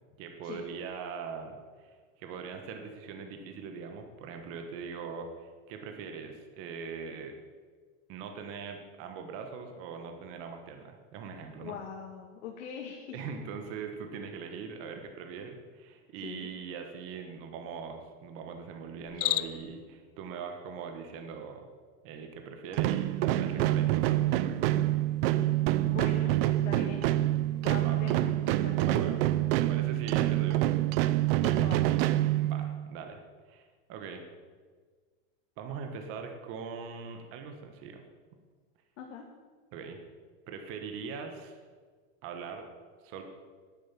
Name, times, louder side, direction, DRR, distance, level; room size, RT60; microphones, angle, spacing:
voice 1, 0.2-7.3 8.1-11.7 13.1-21.7 22.0-25.0 27.8-28.0 28.9-29.2 29.6-30.7 32.4-33.2 33.5-34.2 35.6-38.1 39.7-40.0 40.5-41.6 42.2-42.7 43.0-43.2, right 5 dB, 35° right, 5 dB, 1.5 m, -41 dB
voice 2, 11.6-13.2 16.2-16.5 23.5-23.9 25.3-25.5 25.8-29.2 29.8-30.0 31.4-32.0 39.0-39.2, left 7 dB, 80° left, 0 dB, 2.0 m, -42 dB
Cricket, 19.0-19.8, left 17 dB, 50° left, 0.6 m, -31 dB
sound 1, 22.7-32.9, right 15 dB, 55° right, 0.6 m, -27 dB
10.5 x 10.0 x 7.5 m, 1.5 s
supercardioid pair, 165°, 37 cm